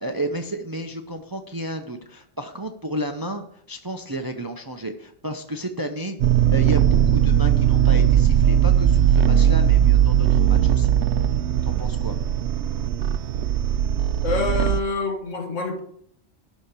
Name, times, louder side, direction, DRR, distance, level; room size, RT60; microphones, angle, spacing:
voice 1, 0.0-6.2 6.5-10.9 11.6-12.2, right 1 dB, 20° right, 0.6 m, -32 dB
sound 1, 6.2-14.8, right 10 dB, 65° right, 0.8 m, -19 dB
voice 2, 14.2-15.8, left 4 dB, 70° left, 1.7 m, -26 dB
11.5 x 4.4 x 8.2 m
omnidirectional pair, 1.3 m